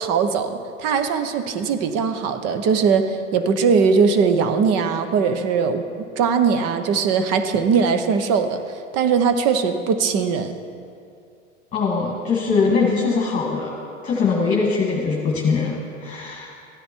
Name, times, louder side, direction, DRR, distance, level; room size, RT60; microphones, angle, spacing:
voice 1, 0.0-5.8 6.2-8.6 8.9-10.5, right 5 dB, 40° right, 9 dB, 1.1 m, -20 dB
voice 2, 11.7-13.7 14.0-15.8 16.0-16.5, left 4 dB, 20° left, -3 dB, 2.0 m, -21 dB
15.0 x 10.0 x 4.6 m, 2.4 s
hypercardioid pair, 110°, 38 cm